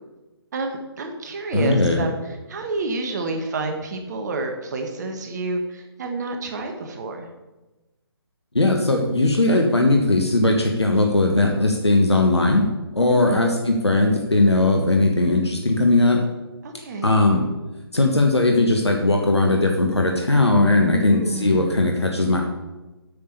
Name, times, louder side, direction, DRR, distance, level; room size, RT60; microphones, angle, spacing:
voice 1, 0.5-7.3 13.1-13.5 16.6-17.1 20.9-21.9, right 3 dB, 45° right, 4 dB, 1.3 m, -29 dB
voice 2, 1.5-2.0 8.5-12.7 12.9-16.2 17.0-17.5 17.9-22.4, left 2 dB, 90° left, 2 dB, 1.5 m, -18 dB
8.6 x 5.7 x 6.8 m, 1.1 s
figure-of-eight pair, 140°, 14 cm